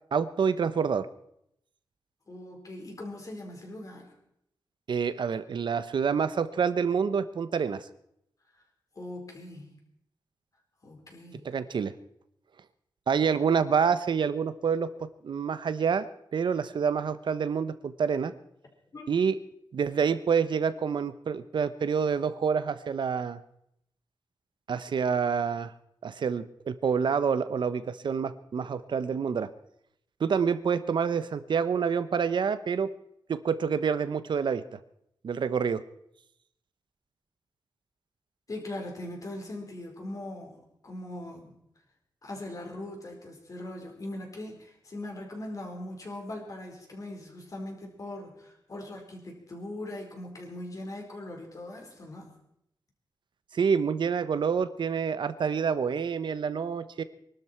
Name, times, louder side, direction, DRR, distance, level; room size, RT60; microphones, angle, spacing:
voice 1, 0.1-1.1 4.9-7.9 11.4-11.9 13.1-16.1 16.3-18.3 19.1-19.4 19.7-23.4 24.7-25.7 26.0-29.5 30.2-32.9 33.3-34.6 35.2-35.8 53.5-57.0, right 6 dB, 70° right, 13 dB, 0.9 m, -27 dB
voice 2, 2.3-4.1 8.9-9.7 10.8-11.5 18.9-19.1 38.5-41.5 42.2-52.3, left 1 dB, 45° left, 1 dB, 4.7 m, -40 dB
24.0 x 12.5 x 4.5 m, 0.75 s
wide cardioid pair, 115°, 8 cm